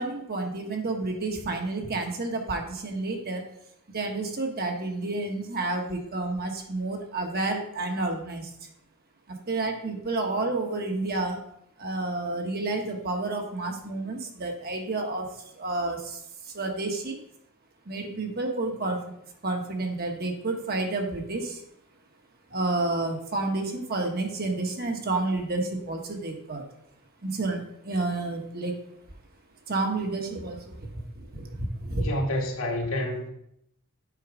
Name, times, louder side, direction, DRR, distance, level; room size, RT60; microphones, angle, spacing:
voice 1, 0.0-3.4 3.9-8.5 9.3-11.4 11.8-15.3 15.5-16.2 16.5-17.2 17.9-19.0 19.4-21.6 22.5-26.6 27.2-28.7 29.7-30.9 31.2-32.1, right 2 dB, 45° right, 2 dB, 1.2 m, -30 dB
voice 2, 32.0-33.3, left 1 dB, 65° left, 0 dB, 1.7 m, -28 dB
8.4 x 4.6 x 4.9 m, 0.74 s
head